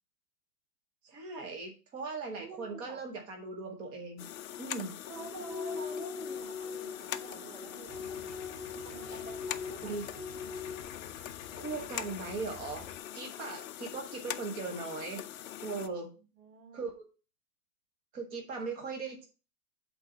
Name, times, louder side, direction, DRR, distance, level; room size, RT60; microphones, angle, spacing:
voice 1, 1.0-4.2 4.6-4.9 9.8-10.1 11.6-12.9 13.1-15.2 15.6-16.1 16.7-17.0 18.1-19.3, right 4 dB, 10° right, 3 dB, 0.7 m, -39 dB
voice 2, 2.4-3.0 5.1-8.5 8.8-10.0 16.1-16.9, right 3 dB, 70° right, 4 dB, 2.9 m, -48 dB
sound 1, 4.2-15.9, left 11 dB, 60° left, 0.6 m, -43 dB
sound 2, 5.1-10.8, left 5 dB, 30° right, 2.1 m, -41 dB
Idling, 7.9-13.0, left 7 dB, 20° left, 1.1 m, -51 dB
8.0 x 3.8 x 5.9 m, 0.34 s
hypercardioid pair, 165°, 47 cm